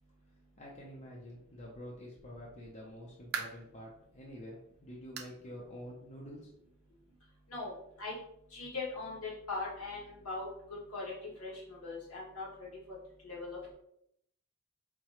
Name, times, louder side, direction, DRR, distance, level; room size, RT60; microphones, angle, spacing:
voice 1, 0.6-6.5, equal, 35° left, -3 dB, 0.6 m, -48 dB
sound 1, 2.9-3.8 4.3-4.4 5.2-5.4 5.7-5.8 6.4-6.5 7.5-7.6, right 7 dB, 50° right, 0.4 m, -41 dB
voice 2, 8.5-10.5 10.9-11.1 11.4-12.7 13.2-13.7, left 3 dB, 85° left, -4 dB, 1.4 m, -40 dB
4.7 x 2.2 x 2.9 m, 0.75 s
head